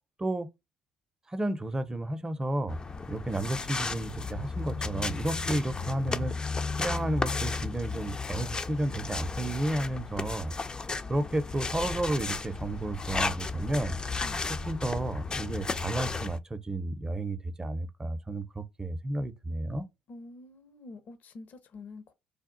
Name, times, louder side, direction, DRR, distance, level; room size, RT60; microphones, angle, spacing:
voice 1, 1.3-2.8 3.1-6.4 6.8-10.5 11.1-14.0 14.6-19.9, right 1 dB, 20° right, 0.6 m, -32 dB
sound 1, 2.7-16.4, left 4 dB, 25° left, 0.4 m, -34 dB
voice 2, 20.1-22.1, left 3 dB, 55° left, 0.7 m, -47 dB
3.4 x 2.3 x 3.8 m
hypercardioid pair, 65°, 3 cm